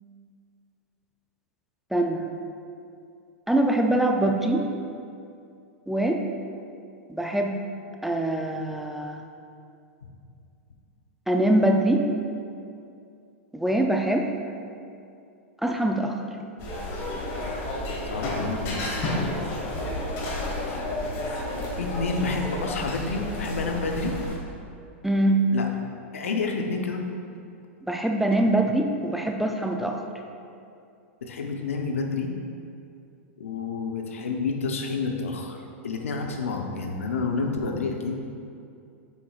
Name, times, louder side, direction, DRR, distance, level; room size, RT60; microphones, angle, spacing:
voice 1, 1.9-2.3 3.5-4.7 5.9-6.2 7.1-7.6 8.0-9.2 11.3-12.1 13.5-14.3 15.6-16.2 25.0-25.5 27.9-30.0, right 1 dB, 5° right, 2 dB, 0.4 m, -23 dB
sound 1, 16.6-24.4, left 1 dB, 40° left, 1.4 m, -31 dB
voice 2, 18.1-19.3 20.7-20.8 21.8-24.2 25.5-25.7 26.1-27.0 31.2-32.3 33.4-35.6 35.8-38.2, left 4 dB, 90° left, 3 dB, 0.8 m, -29 dB
7.5 x 5.8 x 2.4 m, 2.5 s
hypercardioid pair, 125°, 7 cm